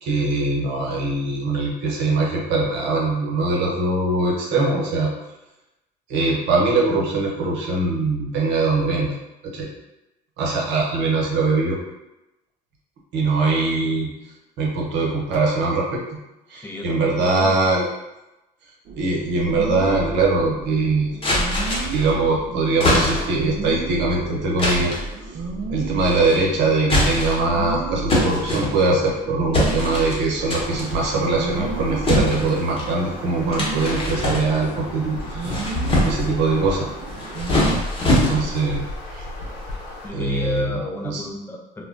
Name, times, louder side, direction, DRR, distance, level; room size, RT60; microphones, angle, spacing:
voice 1, 0.0-5.1 6.1-9.1 9.4-9.7 10.4-11.8 13.1-14.1 14.6-16.0 16.5-17.8 19.0-21.1 21.9-24.9 25.7-36.9 38.1-38.8 39.1-39.2 40.1-40.7 41.0-41.2, right 3 dB, 75° right, -2 dB, 0.8 m, -22 dB
voice 2, 16.5-17.6 37.6-37.8 38.3-38.5 40.0-41.8, left 1 dB, 10° left, 0 dB, 0.4 m, -32 dB
sound 1, 18.8-37.8, right 3 dB, 50° right, 0.4 m, -32 dB
sound 2, 21.2-22.1 22.8-23.5 24.6-25.1 26.0-26.4 26.8-27.5 28.1-29.1 29.5-30.2 30.5-30.9 32.0-32.9 33.5-34.8 35.3-36.4 37.1-38.7, left 1 dB, 30° left, 1.0 m, -23 dB
sound 3, 30.4-40.1, left 2 dB, 85° left, 0.6 m, -35 dB
2.1 x 2.1 x 3.7 m, 0.97 s
supercardioid pair, 90°, 18 cm